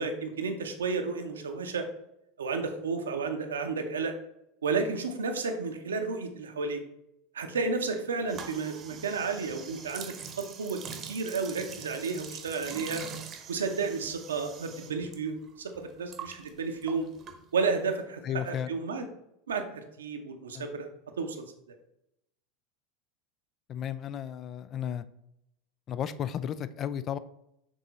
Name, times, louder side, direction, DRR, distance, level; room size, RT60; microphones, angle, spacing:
voice 1, 0.0-1.9 2.4-4.1 4.6-6.8 7.3-13.0 13.5-17.1 17.5-19.1 19.5-20.9 21.2-21.4, right 4 dB, 70° right, 6 dB, 0.7 m, -32 dB
sound 1, 8.3-15.2 15.4-17.8, right 6 dB, 35° right, 0.9 m, -44 dB
voice 2, 18.2-18.7 20.5-20.7 23.7-25.0 25.9-27.2, left 9 dB, 35° left, 14 dB, 0.3 m, -33 dB
6.3 x 3.7 x 4.0 m, 0.81 s
figure-of-eight pair, 80°, 0 cm